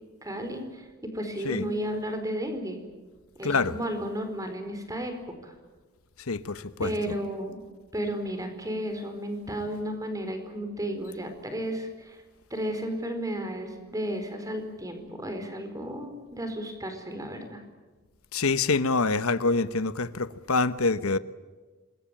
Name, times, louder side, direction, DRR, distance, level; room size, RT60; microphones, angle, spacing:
voice 1, 0.2-2.8 3.4-5.1 5.4-5.5 6.8-7.6 7.9-12.2 12.5-17.6, equal, 15° right, 7 dB, 4.5 m, -33 dB
voice 2, 3.4-3.8 6.3-6.9 18.3-21.2, left 3 dB, 80° left, 14 dB, 1.1 m, -26 dB
27.0 x 22.0 x 9.0 m, 1.3 s
head